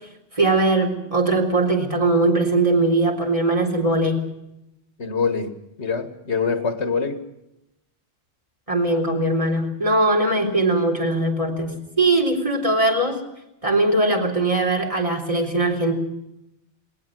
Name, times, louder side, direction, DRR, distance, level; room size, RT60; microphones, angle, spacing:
voice 1, 0.3-4.3 8.7-13.2 13.6-15.9, right 2 dB, 30° right, 3.9 m, -20 dB
voice 2, 5.0-7.2, left 5 dB, 85° left, 2.1 m, -25 dB
19.5 x 19.0 x 7.7 m
omnidirectional pair, 1.1 m